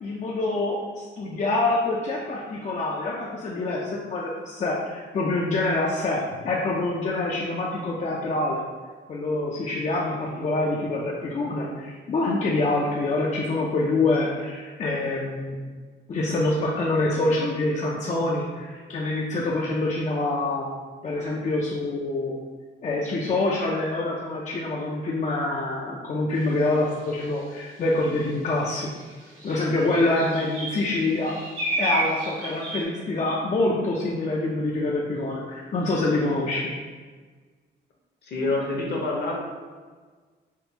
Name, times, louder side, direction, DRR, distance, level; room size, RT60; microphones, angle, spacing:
voice 1, 0.0-8.6 9.1-15.6 16.1-20.7 21.0-22.3 22.8-28.9 29.4-31.4 31.8-36.7, left 2 dB, 35° left, -3 dB, 0.4 m, -26 dB
sound 1, 26.3-26.5 27.0-27.4 28.3-28.4 28.7-32.8, right 2 dB, 85° right, 1.2 m, -31 dB
voice 2, 38.3-39.4, left 2 dB, 55° left, -1 dB, 0.8 m, -26 dB
3.5 x 2.4 x 2.8 m, 1.5 s
cardioid pair, 90°, 20 cm